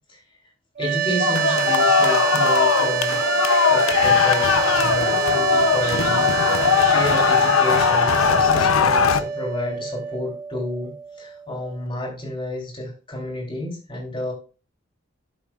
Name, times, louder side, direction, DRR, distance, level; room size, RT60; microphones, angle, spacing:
voice 1, 0.8-3.2 3.7-4.5 4.7-6.3 6.8-10.9 11.2-14.3, left 1 dB, 25° left, -1 dB, 3.6 m, -30 dB
sound 1, 0.8-11.9, right 8 dB, 40° right, 0.6 m, -26 dB
sound 2, 1.2-9.2, left 6 dB, 80° left, 0.6 m, -19 dB
12.0 x 7.6 x 2.4 m, 0.35 s
head